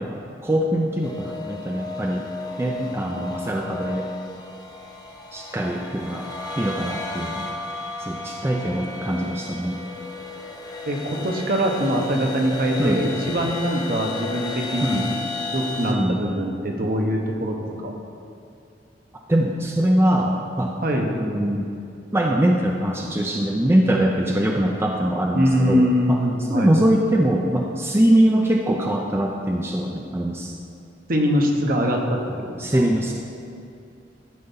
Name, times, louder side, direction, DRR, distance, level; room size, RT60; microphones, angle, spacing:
voice 1, 0.0-2.2 2.6-4.1 5.3-6.3 6.6-7.5 8.0-9.8 12.8-13.0 14.8-15.1 15.9-16.2 19.3-20.8 21.2-21.7 22.1-26.2 26.5-30.5 32.6-33.1, right 1 dB, 15° right, 0 dB, 0.5 m, -22 dB
sound 1, 1.0-15.9, left 3 dB, 25° left, 0.8 m, -34 dB
voice 2, 10.9-15.1 15.5-17.9 20.8-21.2 25.3-26.7 31.1-32.9, equal, 55° right, 2 dB, 1.1 m, -23 dB
12.5 x 4.5 x 5.5 m, 2.5 s
head